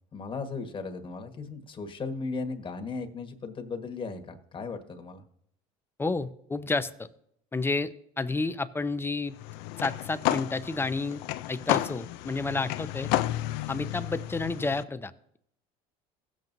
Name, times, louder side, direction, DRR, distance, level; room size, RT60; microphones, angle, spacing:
voice 1, 0.1-5.2, left 4 dB, 30° left, 5 dB, 1.4 m, -36 dB
voice 2, 6.0-7.1 7.5-7.9 8.2-9.4 9.8-11.2 11.5-13.1 13.7-15.4, left 3 dB, 15° left, 11 dB, 0.6 m, -30 dB
sound 1, 9.3-14.8, left 14 dB, 75° left, 0.5 m, -32 dB
16.5 x 7.5 x 2.7 m, 0.72 s
supercardioid pair, 90°, 16 cm